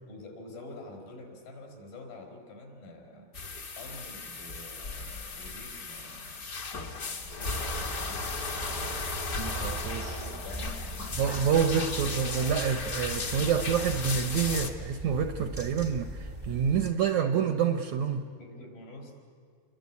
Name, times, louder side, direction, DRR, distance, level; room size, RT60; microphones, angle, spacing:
voice 1, 0.1-3.3 3.8-6.5 7.1-8.3 10.1-11.3 18.4-19.1, left 2 dB, 75° left, 3 dB, 6.0 m, -47 dB
sound 1, 3.3-14.7, left 4 dB, 45° left, 1.1 m, -36 dB
sound 2, 7.5-16.9, right 2 dB, 35° right, 0.3 m, -40 dB
voice 2, 9.4-10.2 11.2-18.2, right 7 dB, 75° right, 8 dB, 1.7 m, -28 dB
28.0 x 22.0 x 8.3 m, 2.2 s
omnidirectional pair, 4.2 m